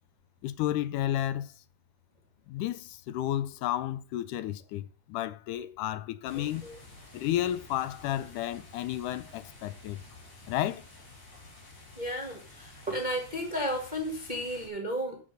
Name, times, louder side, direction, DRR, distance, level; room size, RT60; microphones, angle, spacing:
voice 1, 0.4-1.5 2.5-6.6 7.1-10.0 10.5-10.9, left 13 dB, 80° left, 2.2 m, -32 dB
sound 1, 6.2-14.7, left 2 dB, 65° left, 4.9 m, -51 dB
voice 2, 6.3-6.8 11.9-15.2, equal, 20° right, 1.2 m, -33 dB
9.2 x 6.6 x 6.6 m
omnidirectional pair, 3.7 m